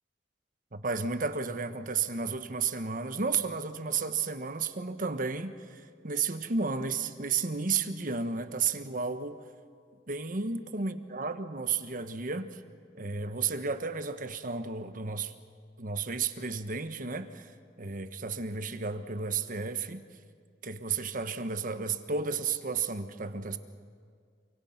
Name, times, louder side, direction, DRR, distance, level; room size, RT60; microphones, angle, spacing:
voice 1, 0.7-9.4 10.1-12.6 12.9-15.3 15.8-17.5 17.8-20.0 20.6-23.6, right 5 dB, 50° right, 9 dB, 1.2 m, -32 dB
28.0 x 25.0 x 5.9 m, 2.1 s
head